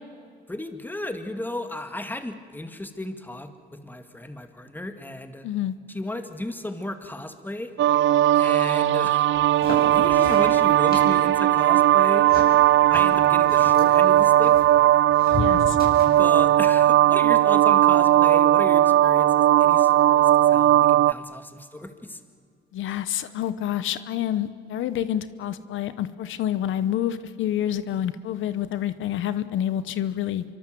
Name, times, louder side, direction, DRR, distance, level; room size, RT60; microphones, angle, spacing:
voice 1, 0.5-5.5 5.9-7.7 8.3-9.3 9.9-12.3 12.9-14.6 16.1-22.2, left 1 dB, 10° left, 7 dB, 2.1 m, -34 dB
voice 2, 5.4-5.7 15.4-15.8 22.7-30.4, left 11 dB, 80° left, 13 dB, 1.0 m, -28 dB
sound 1, 7.8-21.1, right 13 dB, 70° right, 0.6 m, -18 dB
sound 2, 9.3-16.3, left 3 dB, 50° left, 7.8 m, -36 dB
26.5 x 24.5 x 7.7 m, 2.1 s
cardioid pair, 90°, 20 cm